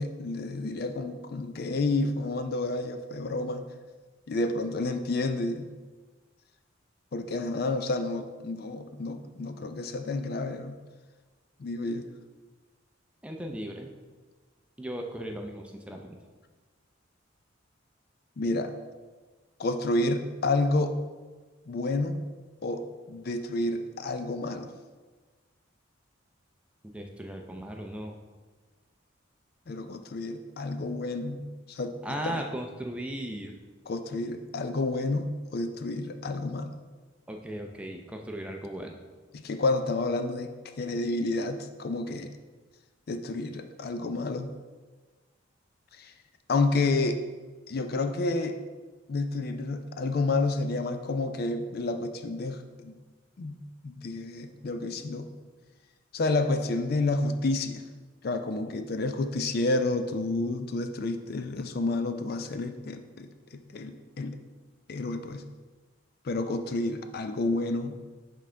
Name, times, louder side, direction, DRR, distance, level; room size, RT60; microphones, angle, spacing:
voice 1, 0.0-3.6 4.3-5.7 7.1-10.8 11.6-12.0 18.4-18.7 19.6-21.0 21.7-22.2 22.6-24.7 29.7-32.4 33.9-36.8 39.3-42.3 43.1-44.5 45.9-46.1 46.5-47.2 47.7-48.6 49.1-53.0 53.4-55.3 56.1-57.8 58.2-64.4 64.9-65.5 66.2-68.0, left 2 dB, 50° left, 8 dB, 0.4 m, -30 dB
voice 2, 13.2-13.9 14.8-16.2 26.9-28.2 32.0-33.5 37.3-39.0, right 1 dB, 5° right, 2 dB, 0.5 m, -37 dB
10.5 x 3.8 x 3.3 m, 1.3 s
head